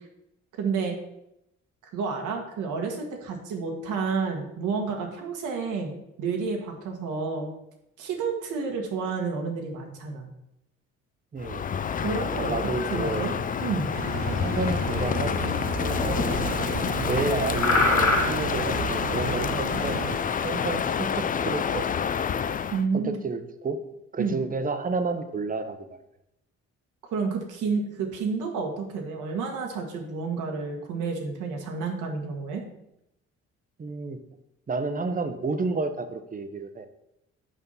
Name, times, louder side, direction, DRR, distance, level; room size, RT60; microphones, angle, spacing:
voice 1, 0.6-1.0 1.9-7.5 8.0-10.3 12.0-13.3 13.6-13.9 22.7-23.2 24.2-24.4 27.1-32.6, right 5 dB, 85° right, 2 dB, 1.5 m, -30 dB
voice 2, 11.3-11.6 12.5-13.4 14.4-16.4 17.0-20.0 20.4-21.9 22.9-23.8 24.1-26.0 33.8-34.2 34.7-36.9, right 3 dB, 30° right, 9 dB, 0.8 m, -31 dB
Crow, 11.4-22.8, left 7 dB, 30° left, 0.3 m, -28 dB
sound 1, 11.8-21.0, left 2 dB, 80° left, 2.0 m, -32 dB
sound 2, 13.9-20.2, right 4 dB, 70° right, 1.3 m, -33 dB
5.9 x 5.4 x 5.4 m, 0.84 s
cardioid pair, 90°, 30 cm